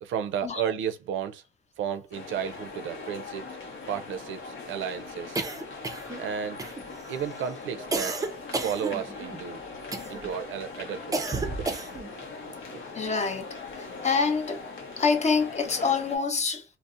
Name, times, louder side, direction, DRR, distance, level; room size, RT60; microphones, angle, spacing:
voice 1, 0.0-1.4 1.8-3.5 3.9-5.4 6.2-6.6 7.1-8.2 8.6-9.6 10.1-11.2 11.6-11.7 12.1-12.8, right 8 dB, 75° right, 0.5 m, -33 dB
sound 1, 2.1-16.2, left 4 dB, 80° left, 0.8 m, -41 dB
sound 2, 5.3-6.3 6.6-7.1 7.9-9.4 9.9-10.3 11.1-12.1, right 3 dB, 15° right, 0.4 m, -32 dB
voice 2, 12.9-13.5 13.8-14.6 15.0-16.6, left 5 dB, 35° left, 0.6 m, -26 dB
2.6 x 2.0 x 2.4 m
cardioid pair, 90°, 20 cm